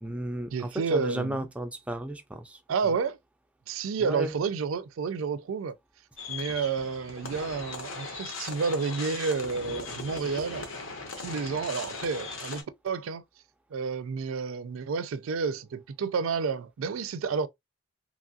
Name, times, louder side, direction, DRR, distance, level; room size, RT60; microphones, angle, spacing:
voice 1, 0.0-2.6 4.1-4.3, right 1 dB, 5° right, 0.3 m, -34 dB
voice 2, 0.5-1.5 2.7-3.2 3.7-5.8 6.3-10.7 11.2-13.2 13.7-17.5, right 5 dB, 80° right, 0.4 m, -30 dB
sound 1, 6.2-12.6, left 3 dB, 75° left, 0.9 m, -39 dB
3.1 x 2.4 x 2.6 m
head